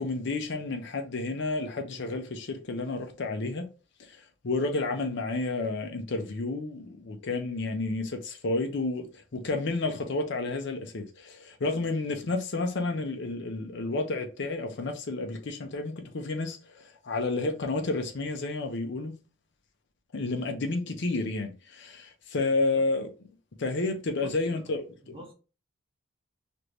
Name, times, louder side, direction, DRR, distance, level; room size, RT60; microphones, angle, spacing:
voice 1, 0.0-3.7 4.0-19.2 20.1-23.1 23.6-25.1, left 3 dB, 60° left, 0.6 m, -31 dB
voice 2, 22.5-22.9 24.2-24.7 25.0-25.3, equal, 25° right, 0.9 m, -48 dB
3.3 x 2.5 x 2.9 m
head